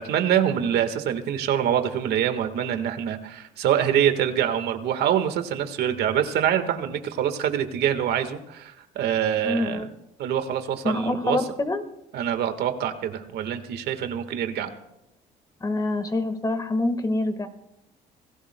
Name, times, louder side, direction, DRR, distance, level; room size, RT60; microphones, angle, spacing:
voice 1, 0.0-9.9 10.2-11.4 12.1-14.7, right 9 dB, 75° right, 8 dB, 1.5 m, -25 dB
voice 2, 9.4-9.8 10.8-11.8 15.6-17.5, left 2 dB, 20° left, 8 dB, 1.5 m, -26 dB
26.5 x 17.5 x 2.2 m, 0.88 s
cardioid pair, 110°, 17 cm